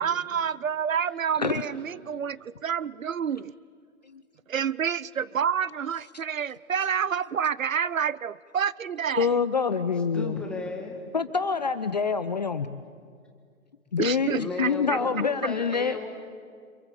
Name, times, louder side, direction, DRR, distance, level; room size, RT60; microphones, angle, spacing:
voice 1, 0.0-3.6 4.5-9.3 14.0-15.0, right 7 dB, 70° right, 21 dB, 0.7 m, -28 dB
voice 2, 9.2-10.4 11.1-12.8 13.9-16.0, left 5 dB, 30° left, 11 dB, 0.6 m, -26 dB
voice 3, 10.1-11.1 14.4-16.1, left 3 dB, ahead, 1 dB, 1.7 m, -35 dB
29.0 x 26.0 x 7.6 m, 2.1 s
figure-of-eight pair, 150°, 42 cm